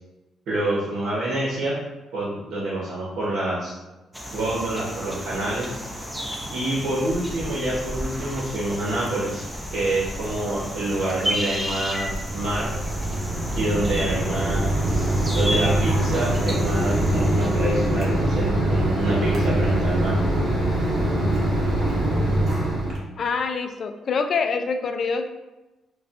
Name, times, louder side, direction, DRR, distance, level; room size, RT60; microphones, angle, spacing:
voice 1, 0.5-1.8 2.1-3.8 4.3-5.8 6.5-9.4 9.7-12.7 13.5-20.1, right 1 dB, 75° right, -8 dB, 0.9 m, -27 dB
sound 1, 4.1-18.4, equal, 5° right, 0.5 m, -32 dB
Mechanisms, 12.0-23.0, right 1 dB, 45° right, 1.1 m, -23 dB
voice 2, 23.2-25.3, left 5 dB, 55° left, 7 dB, 0.3 m, -25 dB
4.0 x 2.2 x 2.5 m, 1.0 s
cardioid pair, 90°, 0 cm